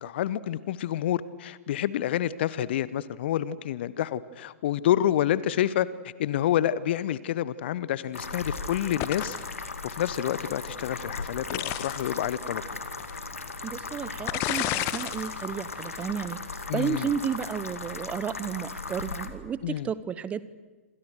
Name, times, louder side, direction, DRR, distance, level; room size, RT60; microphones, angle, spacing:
voice 1, 0.0-5.9 6.2-12.6 16.7-17.1 19.6-19.9, left 11 dB, 50° left, 18 dB, 1.1 m, -28 dB
sound 1, 8.1-19.3, left 3 dB, 75° left, 2.3 m, -37 dB
sound 2, 9.0-9.5 11.5-12.1 13.0-13.1 14.3-15.3 15.7-16.1, left 15 dB, 35° left, 1.3 m, -30 dB
voice 2, 13.6-20.4, right 8 dB, 20° right, 17 dB, 1.0 m, -32 dB
27.5 x 27.0 x 6.5 m, 1.3 s
figure-of-eight pair, 105°, 8 cm